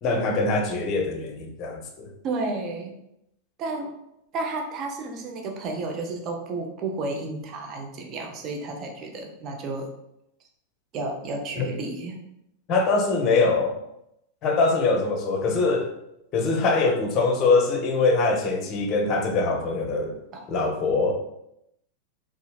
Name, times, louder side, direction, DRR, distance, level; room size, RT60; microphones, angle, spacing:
voice 1, 0.0-2.1 11.6-11.7 12.7-13.8 14.4-15.9 16.3-20.2 20.5-21.1, left 3 dB, 35° left, 3 dB, 0.6 m, -23 dB
voice 2, 2.2-2.9 3.6-4.0 4.3-9.9 10.9-12.2 20.3-20.4, right 3 dB, 35° right, 3 dB, 0.5 m, -32 dB
3.9 x 2.4 x 2.3 m, 0.82 s
figure-of-eight pair, 90°, 0 cm